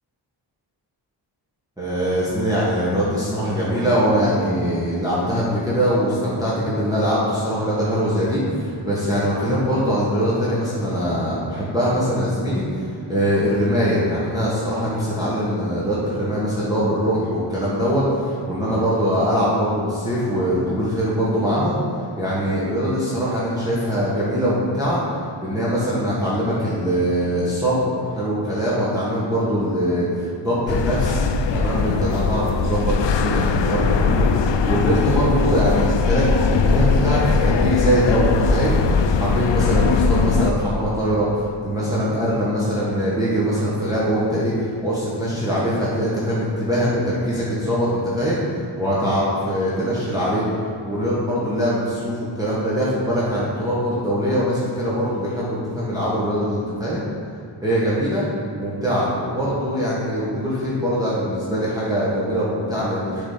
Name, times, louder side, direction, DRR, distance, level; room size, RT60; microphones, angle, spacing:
voice 1, 1.8-12.7 13.1-21.8 22.2-25.0 25.4-31.3 31.5-38.8 39.2-44.5 44.8-48.5 48.8-50.4 50.8-57.1 57.6-58.3 58.5-63.2, equal, 10° right, -9 dB, 1.7 m, -22 dB
sound 1, 30.7-40.5, left 5 dB, 65° left, 0.6 m, -20 dB
7.3 x 4.1 x 5.7 m, 2.6 s
cardioid pair, 90°, 47 cm